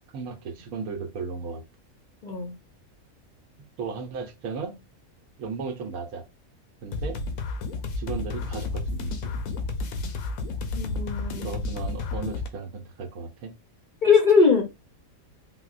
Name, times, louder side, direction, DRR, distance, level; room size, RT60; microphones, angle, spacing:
voice 1, 0.0-1.6 3.8-4.8 5.4-6.2 6.8-7.2 8.0-9.3 11.4-13.5, right 4 dB, 80° right, 1.1 m, -35 dB
voice 2, 2.2-2.6 10.8-11.6 14.0-14.6, left 5 dB, 45° left, 0.6 m, -20 dB
sound 1, 6.9-12.5, left 3 dB, 75° left, 1.0 m, -31 dB
4.0 x 2.1 x 2.4 m
omnidirectional pair, 1.5 m